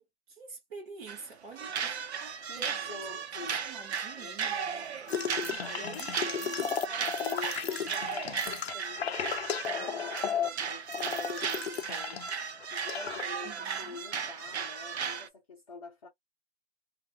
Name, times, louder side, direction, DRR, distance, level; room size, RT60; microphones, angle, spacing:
voice 1, 0.0-1.8 2.2-2.7 3.4-5.0 5.4-6.8 13.4-14.0, right 5 dB, 15° right, 1.2 m, -48 dB
sound 1, 1.1-1.3 1.6-15.3, right 7 dB, 75° right, 0.7 m, -36 dB
voice 2, 2.4-3.6 4.1-4.9 5.6-6.0 6.9-12.2 12.7-16.1, left 4 dB, 35° left, 1.0 m, -46 dB
sound 2, 5.1-12.4 12.6-13.3, left 8 dB, 65° left, 0.6 m, -34 dB
2.6 x 2.3 x 2.8 m
hypercardioid pair, 170°, 33 cm